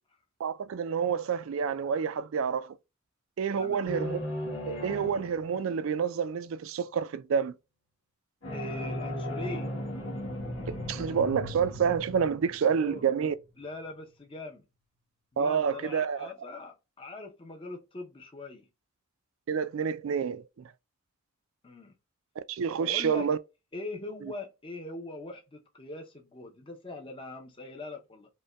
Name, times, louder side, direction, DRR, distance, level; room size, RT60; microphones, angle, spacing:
voice 1, 0.4-2.8 3.4-4.2 4.7-7.6 10.7-13.3 15.4-16.3 19.5-20.7 22.4-23.4, right 6 dB, 75° right, 0.4 m, -28 dB
sound 1, 3.9-6.1 8.4-13.4, left 1 dB, 80° left, 1.3 m, -37 dB
voice 2, 8.5-9.7 12.8-13.1 13.6-14.6 15.3-18.7 21.6-21.9 22.8-23.3 23.7-28.3, left 2 dB, 25° left, 0.6 m, -41 dB
5.2 x 2.2 x 2.2 m
head